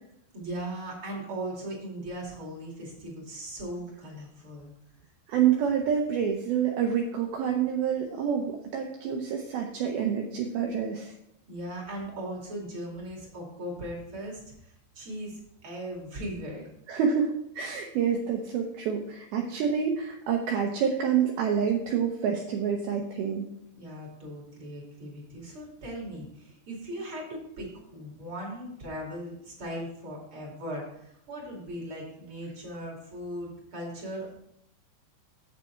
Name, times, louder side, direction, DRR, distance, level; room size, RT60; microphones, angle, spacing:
voice 1, 0.3-4.7 11.5-16.7 23.7-34.3, right 1 dB, 35° right, -2 dB, 2.4 m, -38 dB
voice 2, 5.3-11.1 16.9-23.5, right 7 dB, 80° right, 2 dB, 2.2 m, -27 dB
8.3 x 7.4 x 4.5 m, 0.76 s
omnidirectional pair, 5.4 m